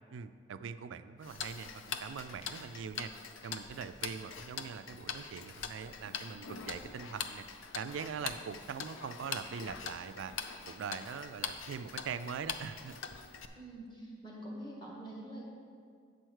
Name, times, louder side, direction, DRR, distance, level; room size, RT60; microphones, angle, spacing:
voice 1, 0.1-3.1 3.4-7.4 7.7-10.3 10.7-13.0, right 6 dB, 75° right, 12 dB, 0.3 m, -42 dB
Tick-tock, 1.2-13.5, left 6 dB, 75° left, 0.5 m, -43 dB
voice 2, 13.5-15.5, right 1 dB, 25° left, -4 dB, 1.6 m, -45 dB
8.5 x 4.5 x 6.3 m, 2.2 s
head